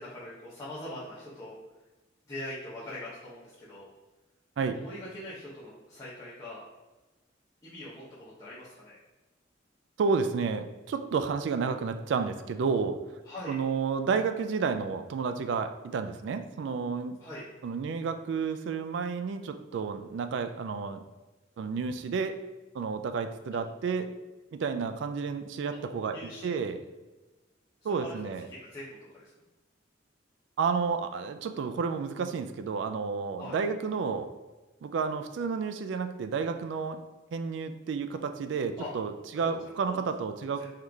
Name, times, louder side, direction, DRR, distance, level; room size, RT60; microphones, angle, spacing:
voice 1, 0.0-1.6 2.3-3.9 4.7-6.6 7.6-9.0 13.2-13.6 17.2-17.4 23.5-23.6 26.1-26.7 27.8-28.2 28.5-29.4 33.4-33.6 38.8-38.9 39.3-40.0 40.5-40.7, left 1 dB, 15° left, -10 dB, 0.8 m, -43 dB
voice 2, 10.0-13.0 13.5-17.2 17.6-21.0 21.6-22.3 22.7-24.1 24.5-26.2 26.4-26.8 27.8-28.4 30.6-34.3 34.8-37.0 37.3-40.7, right 5 dB, 65° right, 8 dB, 0.3 m, -31 dB
3.9 x 3.1 x 3.4 m, 1.1 s
head